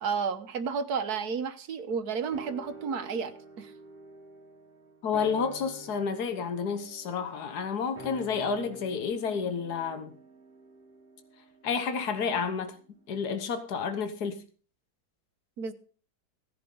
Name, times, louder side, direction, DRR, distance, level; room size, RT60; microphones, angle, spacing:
voice 1, 0.0-3.7 15.6-15.7, right 6 dB, 75° right, 1.6 m, -32 dB
sound 1, 2.3-12.9 13.2-13.3, right 3 dB, 35° right, 1.9 m, -48 dB
voice 2, 5.0-10.2 11.6-12.8 13.1-14.4, left 6 dB, 80° left, 1.8 m, -30 dB
17.0 x 10.5 x 3.9 m
omnidirectional pair, 1.7 m